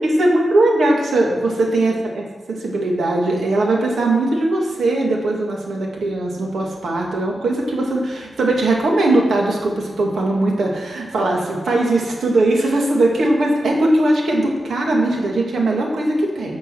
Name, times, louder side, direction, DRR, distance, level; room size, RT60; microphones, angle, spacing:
voice 1, 0.0-16.6, right 2 dB, 80° right, -1 dB, 2.3 m, -19 dB
15.0 x 5.5 x 6.3 m, 1.3 s
wide cardioid pair, 180°, 0 cm